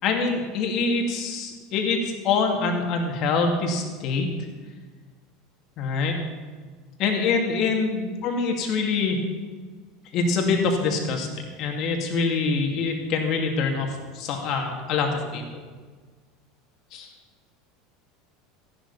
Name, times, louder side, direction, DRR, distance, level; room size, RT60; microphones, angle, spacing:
voice 1, 0.0-4.3 5.8-6.2 7.0-9.2 10.1-11.3 11.6-15.4 16.9-17.1, left 4 dB, 55° left, 2 dB, 2.7 m, -25 dB
14.5 x 11.5 x 4.3 m, 1.5 s
hypercardioid pair, 80°, 0 cm